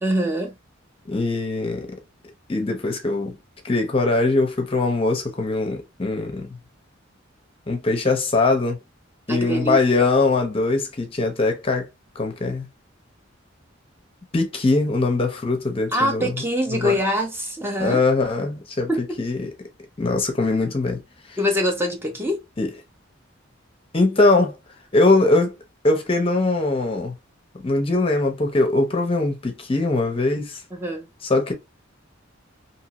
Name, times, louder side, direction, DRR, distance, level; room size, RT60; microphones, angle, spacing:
voice 1, 0.0-0.5 9.3-9.8 15.9-18.0 18.9-19.2 21.4-22.4 30.7-31.1, equal, 10° right, 0.6 m, -24 dB
voice 2, 1.1-1.9 2.5-3.4 3.6-6.6 7.7-8.8 9.3-11.9 12.2-12.7 14.3-16.4 16.7-17.0 17.8-19.5 20.0-21.0 21.3-21.4 22.6-22.7 23.9-24.5 24.9-25.5 25.8-27.2 27.6-30.6 31.2-31.5, left 3 dB, 30° left, 0.6 m, -21 dB
2.8 x 2.6 x 2.9 m
head